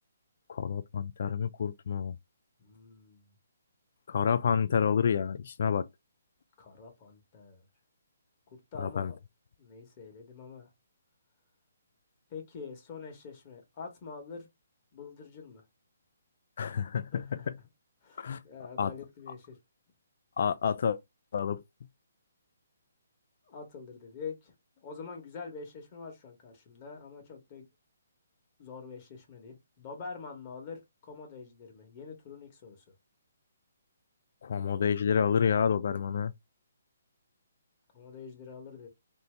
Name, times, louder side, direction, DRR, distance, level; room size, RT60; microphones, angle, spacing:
voice 1, 0.5-2.2 4.1-5.9 8.8-9.1 16.6-17.5 18.2-18.4 18.8-18.9 20.4-21.0 21.3-21.6 34.4-36.3, left 7 dB, 60° left, 0.3 m, -28 dB
voice 2, 2.6-3.2 6.6-7.6 8.5-9.2 9.6-10.7 12.3-14.5 14.9-15.6 17.1-17.5 18.0-19.6 23.5-27.6 28.6-32.8 37.9-38.9, left 5 dB, 35° left, 1.0 m, -45 dB
2.8 x 2.6 x 3.3 m
hypercardioid pair, 155°, 0 cm